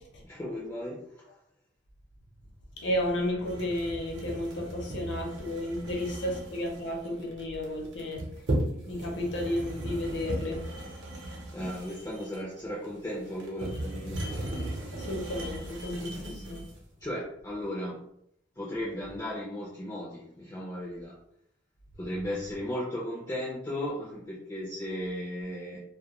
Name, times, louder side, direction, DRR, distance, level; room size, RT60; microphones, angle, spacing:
voice 1, 0.2-1.3 11.5-14.2 17.0-18.1 18.6-21.2 22.0-25.8, left 1 dB, 15° left, -5 dB, 0.4 m, -36 dB
voice 2, 2.8-8.2 8.9-10.6 14.9-16.6, left 1 dB, 65° left, 0 dB, 0.7 m, -32 dB
sound 1, 3.4-16.8, right 1 dB, 60° right, 0.7 m, -37 dB
2.2 x 2.2 x 2.8 m, 0.74 s
head